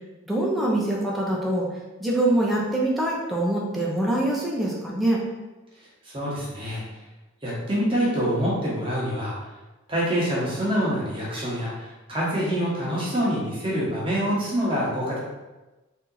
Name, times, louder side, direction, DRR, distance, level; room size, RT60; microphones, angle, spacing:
voice 1, 0.3-1.7 2.0-5.2, right 1 dB, ahead, -5 dB, 0.7 m, -24 dB
voice 2, 6.0-6.8 7.4-9.4 9.9-15.2, equal, 25° right, -6 dB, 1.1 m, -26 dB
3.5 x 2.8 x 3.9 m, 1.1 s
head